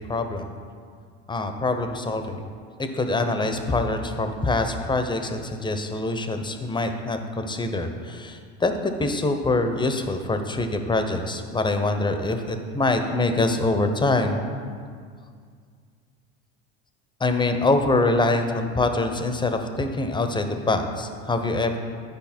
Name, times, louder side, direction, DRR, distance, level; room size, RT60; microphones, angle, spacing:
voice 1, 0.1-0.4 1.3-2.5 2.8-14.4 17.2-21.8, left 2 dB, 15° left, 7 dB, 0.8 m, -24 dB
11.0 x 5.0 x 4.4 m, 2.1 s
supercardioid pair, 90°, 32 cm